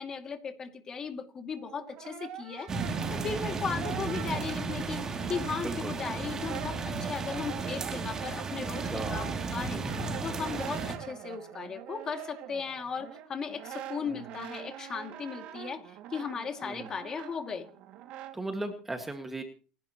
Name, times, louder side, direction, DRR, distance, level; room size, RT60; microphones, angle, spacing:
voice 1, 0.0-9.9 10.2-17.7, left 6 dB, 30° left, 6 dB, 2.4 m, -37 dB
Brass instrument, 1.5-5.9 6.2-18.4, right 11 dB, 60° right, 2.3 m, -44 dB
sound 1, 2.7-10.9, right 4 dB, 25° right, 2.8 m, -34 dB
voice 2, 8.8-9.3 14.1-14.2 16.6-16.9 18.3-19.4, right 2 dB, 10° right, 5 dB, 1.9 m, -37 dB
28.5 x 11.5 x 3.1 m, 0.39 s
supercardioid pair, 120°, 2 cm